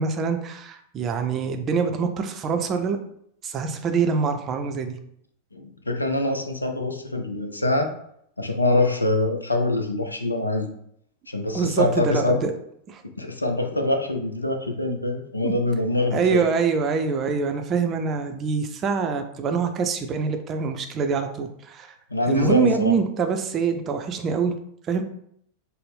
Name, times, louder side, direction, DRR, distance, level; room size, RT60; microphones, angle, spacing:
voice 1, 0.0-3.0 3.4-5.0 11.5-12.5 12.9-13.0 15.4-15.5 16.1-21.9 22.3-24.5 24.9-25.0, right 5 dB, 30° right, 6 dB, 0.4 m, -24 dB
voice 2, 5.5-7.9 8.4-10.7 11.3-12.4 13.2-16.4 22.1-22.9, left 2 dB, 80° left, 5 dB, 0.5 m, -24 dB
4.1 x 2.0 x 3.5 m, 0.69 s
figure-of-eight pair, 90°, 0 cm